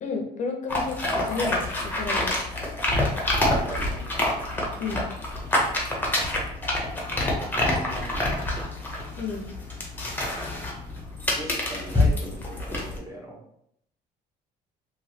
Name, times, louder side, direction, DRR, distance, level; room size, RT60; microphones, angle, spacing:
voice 1, 0.0-2.3 4.8-5.0 9.2-9.5, left 4 dB, 45° left, 3 dB, 0.6 m, -32 dB
sound 1, 0.7-13.0, left 1 dB, 10° left, 0.8 m, -27 dB
voice 2, 3.4-4.2 4.5-5.0 5.5-5.9 7.2-8.5 11.3-13.4, right 1 dB, 20° right, -2 dB, 0.9 m, -40 dB
3.0 x 2.7 x 2.8 m, 0.72 s
cardioid pair, 110°, 17 cm